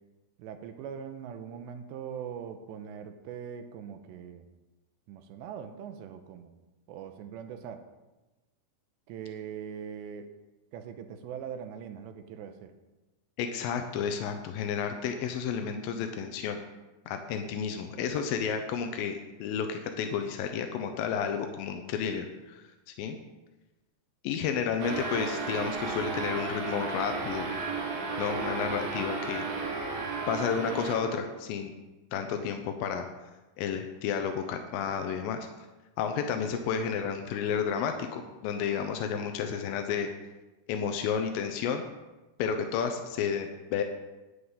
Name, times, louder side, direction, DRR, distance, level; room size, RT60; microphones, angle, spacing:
voice 1, 0.4-4.5 5.1-6.5 6.9-7.9 9.1-10.4 10.7-12.7, right 8 dB, 90° right, 8 dB, 3.0 m, -41 dB
voice 2, 13.4-16.6 17.1-22.6 23.0-23.2 24.2-27.5 28.2-29.4 30.3-31.7 32.1-33.1 33.6-35.5 36.0-40.1 40.7-41.8 42.4-43.8, left 7 dB, 85° left, 6 dB, 2.0 m, -31 dB
sound 1, 24.8-31.4, right 4 dB, 60° right, 3.1 m, -34 dB
10.0 x 9.6 x 5.6 m, 1.1 s
omnidirectional pair, 5.1 m